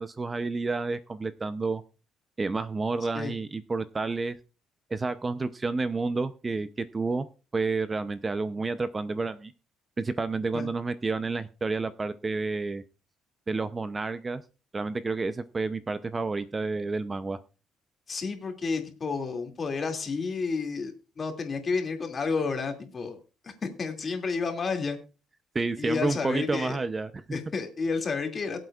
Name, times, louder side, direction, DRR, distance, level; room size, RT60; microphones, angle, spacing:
voice 1, 0.0-1.8 2.4-4.4 4.9-7.3 7.5-9.5 10.0-12.8 13.5-14.4 14.7-17.4 25.5-27.2, right 3 dB, 25° right, 12 dB, 0.7 m, -30 dB
voice 2, 18.1-23.2 23.4-25.0 25.8-26.8 27.3-28.6, left 4 dB, 35° left, 4 dB, 2.4 m, -31 dB
22.5 x 7.9 x 2.4 m, 0.33 s
cardioid pair, 120°, 0 cm